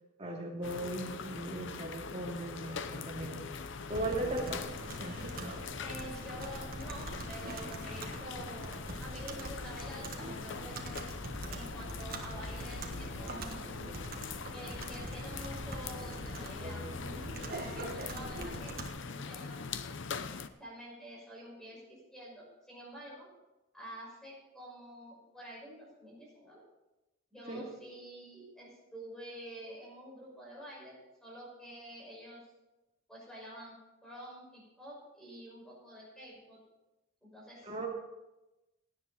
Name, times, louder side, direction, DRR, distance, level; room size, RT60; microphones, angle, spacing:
voice 1, 0.2-3.6 3.9-4.6 27.5-27.6 37.6-37.9, right 1 dB, 30° right, -1 dB, 2.5 m, -37 dB
sound 1, 0.6-20.5, left 5 dB, 60° left, 0.7 m, -42 dB
Computer keyboard, 3.9-18.9, right 1 dB, 45° right, 1.4 m, -43 dB
voice 2, 5.8-11.1 11.5-14.1 14.5-19.6 20.6-23.3 23.7-26.6 27.3-30.9 31.2-32.4 33.1-33.8 34.0-36.6 37.2-37.7, equal, 5° left, -4 dB, 5.5 m, -48 dB
16.5 x 9.8 x 4.2 m, 1.0 s
head